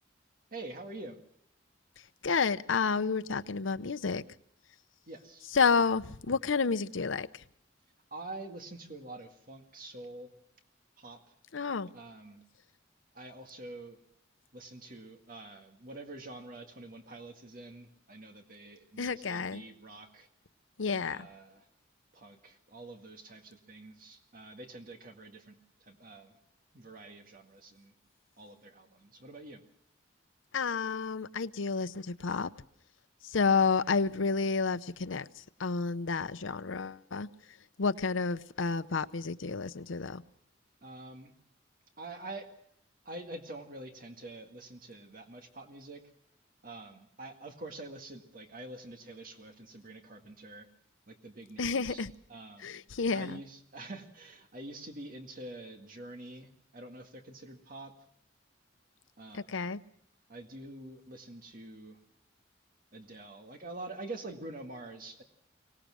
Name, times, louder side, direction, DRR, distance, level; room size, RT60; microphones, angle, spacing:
voice 1, 0.5-1.2 5.1-5.5 8.1-10.3 11.0-11.2 11.9-12.4 13.1-14.0 14.5-20.3 21.0-21.7 22.1-26.4 26.7-27.9 28.4-29.6 40.8-41.3 42.0-42.5 43.1-46.0 46.6-50.7 51.1-52.0 52.3-52.8 53.1-57.9 59.2-59.7 60.3-62.0 62.9-65.2, right 2 dB, 45° right, 4 dB, 1.9 m, -46 dB
voice 2, 2.2-4.2 5.5-7.4 11.5-11.9 19.0-19.6 20.8-21.3 30.5-32.5 33.2-37.3 37.8-40.2 51.6-52.1 52.6-53.4 59.3-59.8, left 5 dB, 85° left, 14 dB, 0.7 m, -30 dB
24.0 x 18.5 x 6.3 m, 0.69 s
head